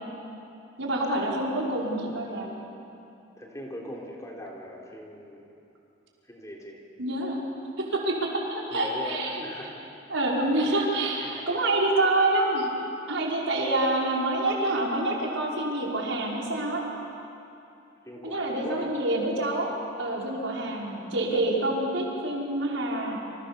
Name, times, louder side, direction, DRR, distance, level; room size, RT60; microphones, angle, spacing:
voice 1, 0.8-2.5 7.0-7.4 7.9-9.4 10.1-12.7 13.1-16.8 18.2-19.7 20.0-23.2, right 2 dB, 80° right, -3 dB, 5.5 m, -27 dB
voice 2, 3.4-5.5 6.3-6.8 8.7-9.9 10.6-11.7 18.0-18.9, equal, 15° left, -1 dB, 3.8 m, -41 dB
28.5 x 27.0 x 7.1 m, 2.7 s
head